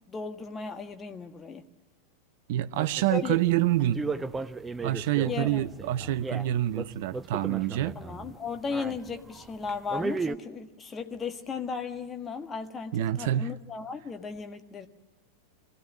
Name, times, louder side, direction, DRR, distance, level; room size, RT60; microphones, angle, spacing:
voice 1, 0.1-1.6 3.1-3.4 5.2-5.7 7.9-14.9, left 5 dB, 20° left, 1.5 m, -35 dB
voice 2, 2.5-4.0 4.8-7.9 12.9-13.5, right 13 dB, 50° right, 0.6 m, -27 dB
sound 1, 2.7-10.3, right 4 dB, 10° right, 0.7 m, -36 dB
24.0 x 16.0 x 9.9 m
figure-of-eight pair, 90°, 0 cm